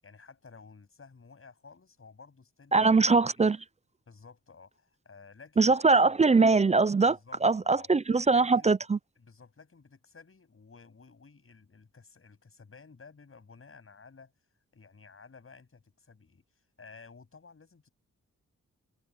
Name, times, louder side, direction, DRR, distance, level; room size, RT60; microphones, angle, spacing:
voice 1, 0.0-3.1 3.4-3.5 4.1-5.7 6.0-6.1 7.1-7.9 8.3-8.7 9.2-14.3 14.7-16.4 16.8-17.9, left 4 dB, 40° left, 8.0 m, -54 dB
voice 2, 2.7-3.6 5.6-9.0, right 4 dB, 20° right, 0.4 m, -22 dB
wide cardioid pair, 120°, 33 cm